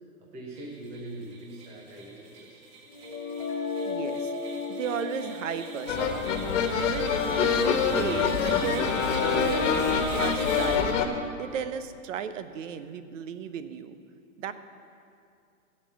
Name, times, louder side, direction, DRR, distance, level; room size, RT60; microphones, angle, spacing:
voice 1, 0.2-2.6, right 1 dB, 5° right, -2 dB, 0.4 m, -42 dB
sound 1, 0.6-10.8, right 4 dB, 30° right, 1.2 m, -43 dB
sound 2, 2.9-8.8, left 4 dB, 20° left, 2.2 m, -36 dB
voice 2, 3.8-4.3 4.7-6.1 6.7-8.9 9.2-10.9 11.4-14.0 14.4-14.5, right 7 dB, 60° right, 11 dB, 0.9 m, -35 dB
sound 3, 5.9-11.1, left 6 dB, 55° left, 1.4 m, -25 dB
16.0 x 5.5 x 7.2 m, 2.4 s
hypercardioid pair, 145°, 43 cm